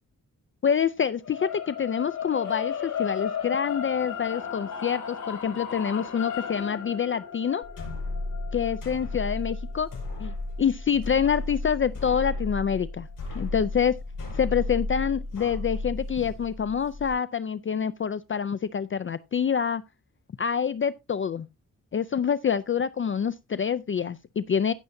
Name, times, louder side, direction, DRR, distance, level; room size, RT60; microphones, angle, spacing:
voice 1, 0.6-7.6 8.5-9.9 10.2-10.3 10.6-13.1 13.3-14.0 14.4-19.8 20.4-21.5 21.9-24.7, left 7 dB, 40° left, 0.4 m, -26 dB
sound 1, 1.2-11.4, left 8 dB, 65° left, 3.4 m, -35 dB
sound 2, 7.6-17.1, left 2 dB, 80° left, 5.7 m, -34 dB
16.0 x 6.9 x 2.6 m
wide cardioid pair, 110°, 32 cm